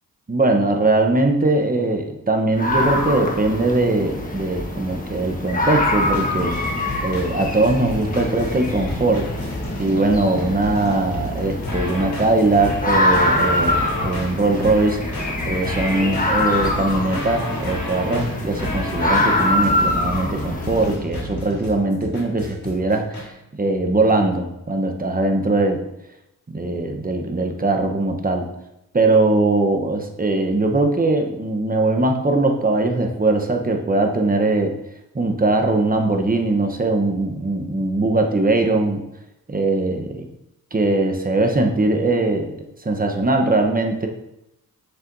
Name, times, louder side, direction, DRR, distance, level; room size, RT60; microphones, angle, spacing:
voice 1, 0.3-6.7 7.0-9.3 9.7-15.0 15.5-25.8 26.5-28.5 28.9-34.7 35.1-39.0 39.5-40.3 40.7-44.1, right 2 dB, 25° right, 4 dB, 0.9 m, -21 dB
sound 1, 2.6-20.9, left 1 dB, 20° left, 1.3 m, -24 dB
sound 2, 6.0-23.2, left 1 dB, 75° left, 2.8 m, -31 dB
7.5 x 6.7 x 2.7 m, 0.86 s
cardioid pair, 90°, 36 cm